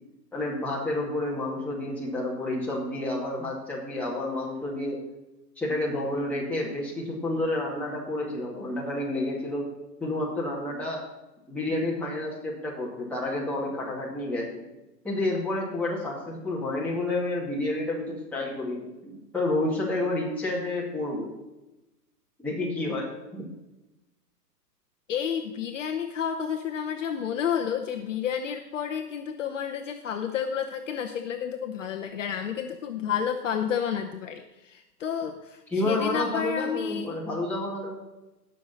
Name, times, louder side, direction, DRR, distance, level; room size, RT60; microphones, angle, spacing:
voice 1, 0.3-5.0 5.6-9.6 10.0-11.0 11.5-14.6 15.0-21.3 22.4-23.4 35.7-37.9, left 2 dB, 5° left, -6 dB, 2.2 m, -30 dB
voice 2, 25.1-37.1, left 8 dB, 50° left, 5 dB, 0.8 m, -30 dB
17.5 x 6.6 x 4.1 m, 1.0 s
hypercardioid pair, 145°, 50 cm